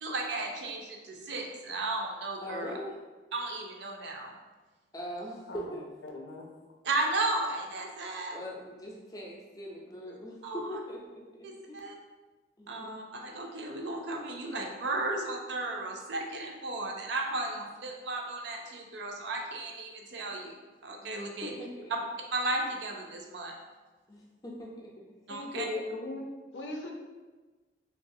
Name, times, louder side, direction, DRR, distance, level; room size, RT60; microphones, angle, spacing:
voice 1, 0.0-2.7 3.3-4.3 6.8-8.4 10.1-10.8 11.4-11.9 12.7-20.6 20.8-21.5 22.3-23.6 25.3-25.7, right 2 dB, 75° right, 1 dB, 0.5 m, -34 dB
voice 2, 2.4-3.0 4.9-5.8 8.3-11.8 12.6-12.9 21.0-21.2 21.4-21.9 24.1-25.2, equal, 20° left, -3 dB, 0.4 m, -42 dB
voice 3, 6.0-6.5 25.3-26.9, left 2 dB, 80° left, 1 dB, 0.5 m, -38 dB
3.1 x 2.4 x 2.6 m, 1.3 s
head